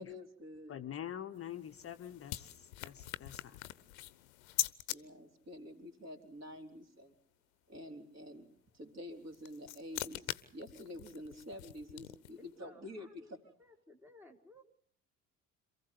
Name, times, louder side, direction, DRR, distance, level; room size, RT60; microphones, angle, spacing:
voice 1, 0.0-0.8 4.9-7.2 7.7-8.5 8.7-13.4, left 1 dB, 35° right, 4 dB, 3.7 m, -48 dB
voice 2, 0.7-3.6, left 10 dB, 30° left, 8 dB, 0.9 m, -45 dB
sound 1, 1.3-5.0 9.1-12.5, left 16 dB, 65° left, 0.9 m, -42 dB
voice 3, 12.4-13.3 13.6-14.6, left 2 dB, 5° right, 4 dB, 1.6 m, -59 dB
27.0 x 15.0 x 8.2 m, 0.62 s
figure-of-eight pair, 55°, 44 cm